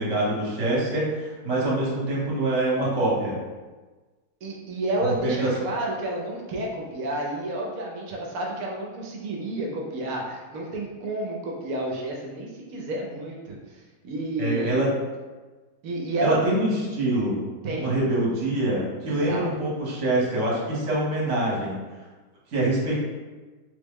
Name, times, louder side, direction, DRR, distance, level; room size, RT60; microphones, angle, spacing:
voice 1, 0.0-3.4 5.2-5.5 14.4-14.9 16.2-17.4 17.8-21.8 22.5-23.1, right 1 dB, 55° right, -5 dB, 1.2 m, -25 dB
voice 2, 4.4-14.8 15.8-16.4 17.6-18.0 19.1-19.4, right 1 dB, 75° right, -1 dB, 1.0 m, -30 dB
3.4 x 2.0 x 3.5 m, 1.3 s
omnidirectional pair, 1.6 m